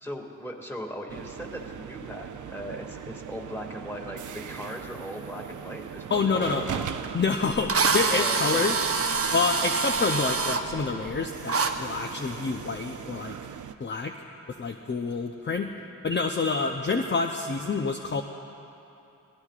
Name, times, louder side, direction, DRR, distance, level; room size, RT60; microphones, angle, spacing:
voice 1, 0.0-6.9 8.1-8.8, equal, 5° left, 1 dB, 2.1 m, -38 dB
sound 1, 1.1-13.7, right 8 dB, 70° right, 0.6 m, -40 dB
voice 2, 6.1-6.7 7.1-8.8 9.3-13.4 13.8-14.2 14.5-15.7 16.0-18.2, left 4 dB, 35° left, 3 dB, 0.7 m, -27 dB
Drill, 7.0-7.1 7.7-10.6 11.5-11.7, right 4 dB, 45° right, 0.9 m, -25 dB
22.5 x 17.0 x 2.5 m, 2.8 s
cardioid pair, 55°, 31 cm